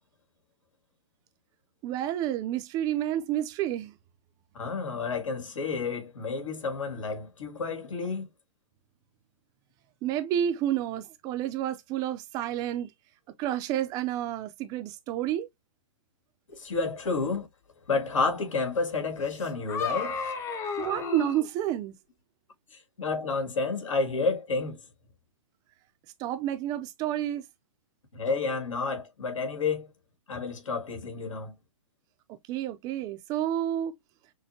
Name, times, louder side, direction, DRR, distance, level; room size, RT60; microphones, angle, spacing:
voice 1, 1.8-3.9 10.0-12.9 13.4-15.5 20.8-21.9 26.2-27.4 32.5-33.9, right 11 dB, 20° right, 0.5 m, -30 dB
voice 2, 4.5-8.3 16.5-17.5 17.9-20.2 22.7-24.8 28.1-29.9 30.3-31.5, left 4 dB, 80° left, 2.1 m, -30 dB
sound 1, 19.3-21.5, left 5 dB, 15° left, 0.7 m, -33 dB
6.3 x 2.2 x 2.8 m
hypercardioid pair, 145°, 16 cm